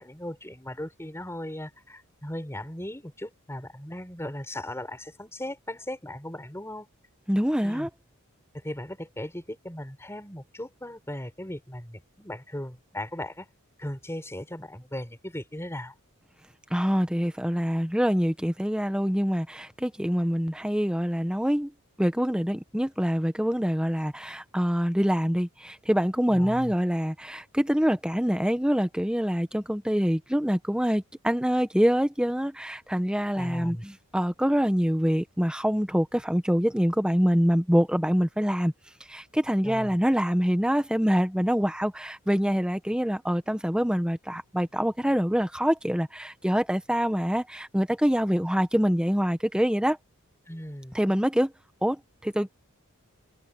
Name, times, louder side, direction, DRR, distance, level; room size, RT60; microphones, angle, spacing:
voice 1, 0.0-6.9 7.6-7.9 8.5-13.5 13.8-15.9 26.3-26.7 33.3-33.8 39.6-40.0 50.5-51.0, left 1 dB, 10° left, 5.8 m, -37 dB
voice 2, 7.3-7.9 16.7-21.7 22.0-38.7 39.1-50.0 50.9-51.5 51.8-52.5, equal, 5° right, 1.2 m, -25 dB
head